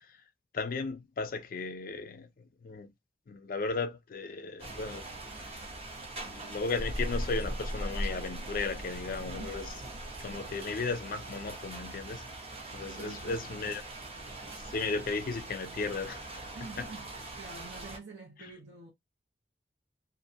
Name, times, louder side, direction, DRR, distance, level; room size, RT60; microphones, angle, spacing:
voice 1, 0.5-2.9 3.3-5.1 5.4-5.6 6.2-9.7 10.2-12.3 12.7-13.8 14.6-16.3 18.4-18.5, left 4 dB, 50° left, 0.4 m, -35 dB
sound 1, 4.6-18.0, right 1 dB, 35° right, 0.7 m, -40 dB
voice 2, 12.8-13.8 16.5-18.9, right 3 dB, 75° right, 0.7 m, -47 dB
2.5 x 2.2 x 2.6 m
head